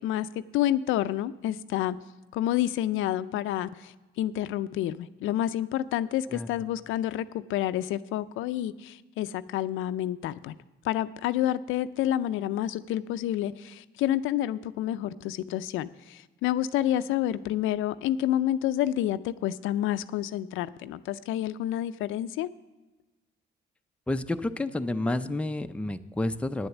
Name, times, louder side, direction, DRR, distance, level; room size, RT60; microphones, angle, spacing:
voice 1, 0.0-2.0 2.3-10.6 10.8-22.5, left 12 dB, 90° left, 13 dB, 0.4 m, -29 dB
voice 2, 24.1-26.7, left 2 dB, 5° left, 8 dB, 0.5 m, -30 dB
9.7 x 7.9 x 7.1 m, 1.2 s
cardioid pair, 90°, 20 cm